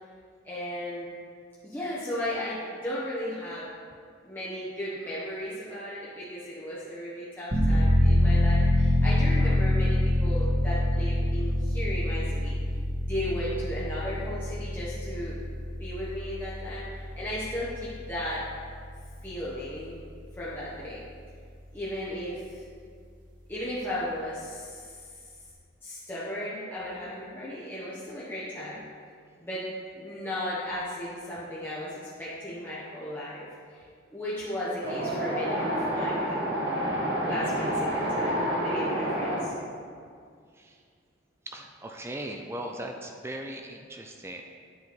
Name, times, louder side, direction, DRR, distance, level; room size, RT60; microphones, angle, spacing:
voice 1, 0.4-1.1 1.6-3.7 4.2-12.6 13.0-15.4 15.8-18.5 19.2-20.0 20.4-21.0 21.7-22.6 23.5-25.1 25.8-28.8 29.4-33.8 34.1-36.4 37.2-39.5, left 1 dB, 10° left, -9 dB, 1.1 m, -35 dB
sound 1, 7.5-20.0 20.4-20.5, left 1 dB, 45° right, 1.7 m, -26 dB
Wind, 34.8-39.4, equal, 60° right, 1.8 m, -28 dB
voice 2, 41.5-44.4, right 1 dB, 15° right, 3 dB, 0.4 m, -38 dB
9.3 x 4.9 x 5.3 m, 2.2 s
head